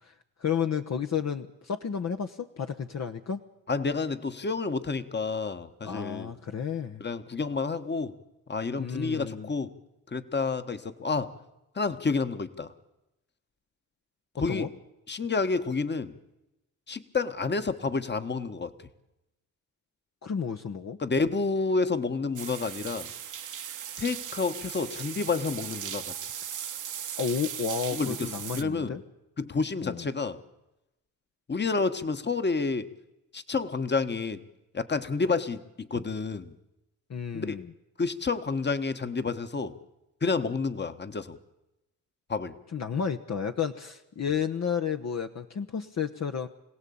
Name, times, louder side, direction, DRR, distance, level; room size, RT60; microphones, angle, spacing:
voice 1, 0.0-3.4 5.8-7.0 8.8-9.5 14.5-14.7 20.2-21.0 27.2-29.0 29.8-30.1 37.1-37.7 42.7-46.5, left 7 dB, 50° left, 6 dB, 1.2 m, -32 dB
voice 2, 3.7-6.3 7.0-8.1 8.5-9.7 10.1-11.4 11.7-12.7 14.4-14.7 15.1-16.2 16.9-18.7 21.0-23.1 24.0-26.1 27.9-29.0 29.4-30.4 31.5-32.9 33.3-34.4 34.7-36.5 37.3-37.6 38.0-39.8 40.2-41.4 42.3-42.6, left 4 dB, 30° left, 11 dB, 1.5 m, -29 dB
sound 1, 22.4-28.6, right 9 dB, 60° right, 1.2 m, -38 dB
25.5 x 17.0 x 8.7 m, 0.95 s
cardioid pair, 75°, 35 cm